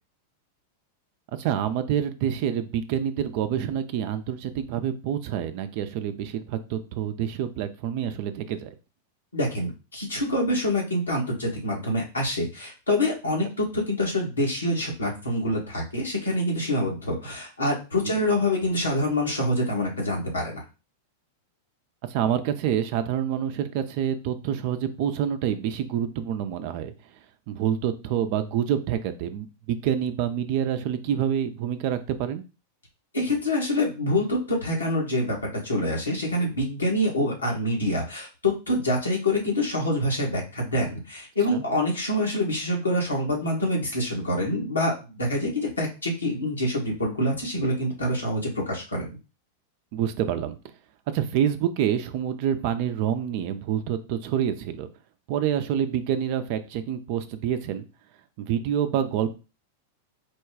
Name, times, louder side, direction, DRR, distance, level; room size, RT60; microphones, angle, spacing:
voice 1, 1.4-8.7 18.0-18.2 22.1-26.9 27.5-32.4 41.5-41.6 49.9-50.6 51.1-54.9 55.3-57.8 58.4-59.3, right 9 dB, 55° right, 9 dB, 0.6 m, -27 dB
voice 2, 9.3-20.6 33.1-49.1, left 1 dB, 90° left, -2 dB, 1.7 m, -26 dB
4.3 x 2.3 x 4.7 m, 0.31 s
hypercardioid pair, 95°, 0 cm